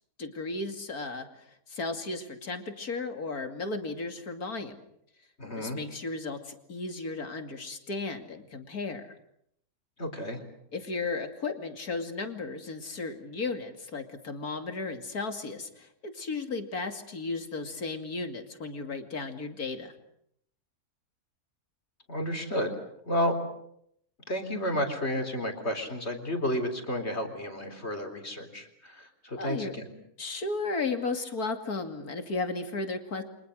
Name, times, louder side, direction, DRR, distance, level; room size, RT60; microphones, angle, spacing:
voice 1, 0.2-4.7 5.5-9.2 10.7-19.9 29.4-29.7 30.2-33.2, left 3 dB, 90° left, 6 dB, 3.1 m, -35 dB
voice 2, 5.4-5.8 10.0-10.4 22.1-22.7 23.1-23.4 24.3-29.9, equal, 45° left, 5 dB, 4.0 m, -31 dB
30.0 x 25.5 x 6.5 m, 0.74 s
omnidirectional pair, 1.6 m